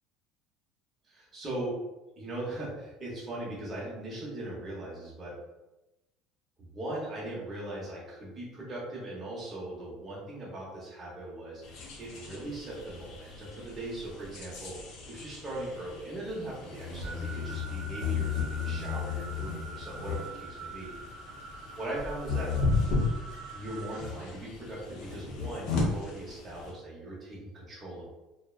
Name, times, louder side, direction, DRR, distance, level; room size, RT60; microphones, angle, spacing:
voice 1, 1.0-1.8 2.1-5.3 6.6-20.9 21.8-22.5 23.5-28.1, right 1 dB, 25° right, -5 dB, 0.8 m, -39 dB
sound 1, 11.6-26.7, left 4 dB, 65° left, 0.6 m, -35 dB
sound 2, 17.0-24.0, right 4 dB, 60° right, 0.9 m, -45 dB
2.5 x 2.1 x 2.4 m, 1.0 s
cardioid pair, 135°, 0 cm